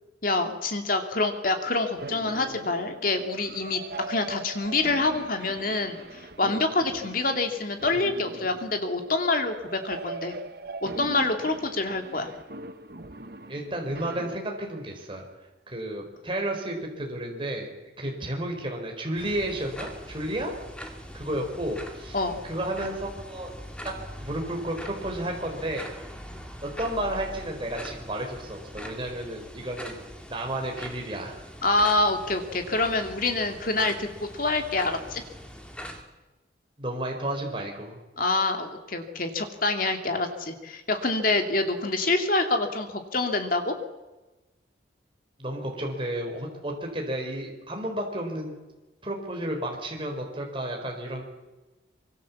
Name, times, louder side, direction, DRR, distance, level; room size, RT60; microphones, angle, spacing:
voice 1, 0.2-3.8 4.1-10.3 10.8-12.3 22.1-22.3 31.6-34.1 34.3-35.2 38.2-43.7, left 2 dB, 45° left, 5 dB, 2.7 m, -26 dB
sound 1, 2.0-14.4, right 2 dB, 50° right, 1.4 m, -41 dB
voice 2, 13.5-15.2 15.7-17.7 18.0-20.5 21.1-22.2 22.4-23.5 23.8-25.9 26.6-30.0 30.3-31.4 36.8-38.0 45.4-48.6 49.0-51.2, right 1 dB, 25° right, 1 dB, 4.5 m, -32 dB
sound 2, 19.2-36.0, equal, 5° left, 2.5 m, -42 dB
24.5 x 23.5 x 7.3 m, 1.1 s
head